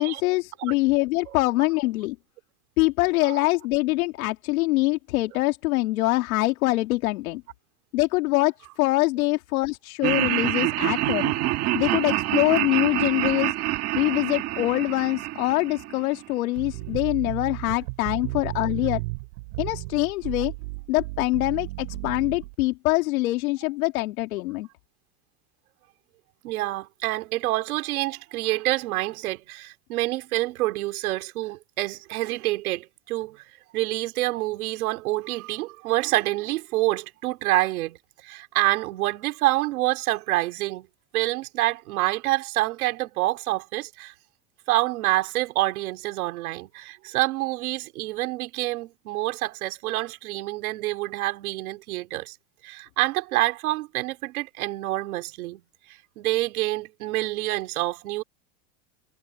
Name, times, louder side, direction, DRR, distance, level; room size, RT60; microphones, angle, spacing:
voice 1, 0.0-2.2 2.8-7.4 7.9-11.3 11.7-13.5 13.9-19.0 19.6-20.5 20.9-24.7, left 20 dB, 75° left, 2.2 m, -24 dB
Laughter, 10.0-16.2, right 17 dB, 35° right, 1.8 m, -26 dB
sound 1, 16.6-22.5, right 25 dB, 60° right, 2.9 m, -34 dB
voice 2, 26.4-40.9 41.1-44.1 44.7-52.4 52.6-55.6 55.9-58.2, right 18 dB, 80° right, 4.0 m, -27 dB
supercardioid pair, 170°, 43 cm